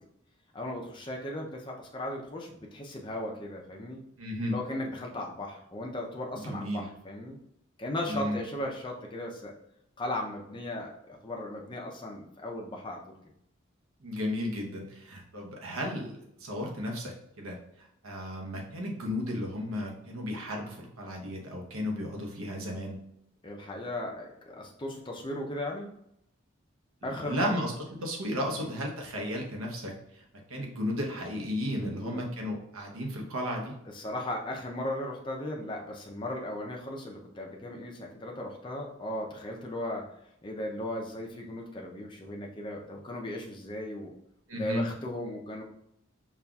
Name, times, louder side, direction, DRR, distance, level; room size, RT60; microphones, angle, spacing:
voice 1, 0.5-4.0 4.5-7.4 7.8-9.5 10.0-13.1 23.4-25.9 27.0-27.5 28.5-28.7 31.8-32.2 33.9-40.0 40.4-44.1 44.5-45.6, left 1 dB, 20° left, 0 dB, 0.4 m, -37 dB
voice 2, 4.2-4.5 6.3-6.8 8.1-8.4 14.0-23.0 27.0-27.7 28.0-33.7 44.5-44.8, equal, 85° right, 0 dB, 0.8 m, -34 dB
5.4 x 2.4 x 2.3 m, 0.76 s
head